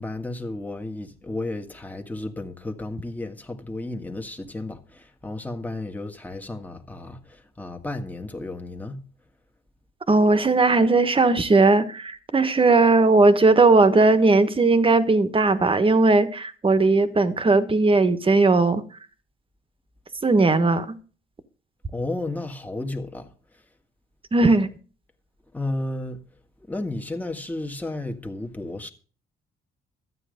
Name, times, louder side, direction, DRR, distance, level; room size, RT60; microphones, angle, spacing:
voice 1, 0.0-9.0 21.9-23.3 25.5-26.2 26.7-28.9, left 2 dB, 10° left, 1.7 m, -33 dB
voice 2, 10.1-18.8 20.2-21.0 24.3-24.7, right 3 dB, 25° right, 1.4 m, -18 dB
13.0 x 9.0 x 5.2 m
cardioid pair, 90°, 20 cm